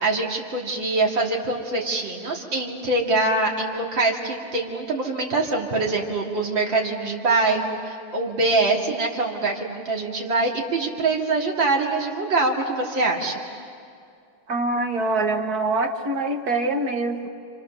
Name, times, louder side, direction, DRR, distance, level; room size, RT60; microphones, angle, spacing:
voice 1, 0.0-13.4, right 3 dB, 70° right, -1 dB, 3.3 m, -24 dB
voice 2, 14.5-17.3, right 2 dB, 55° right, 4 dB, 1.9 m, -24 dB
30.0 x 26.5 x 6.9 m, 2.3 s
omnidirectional pair, 2.1 m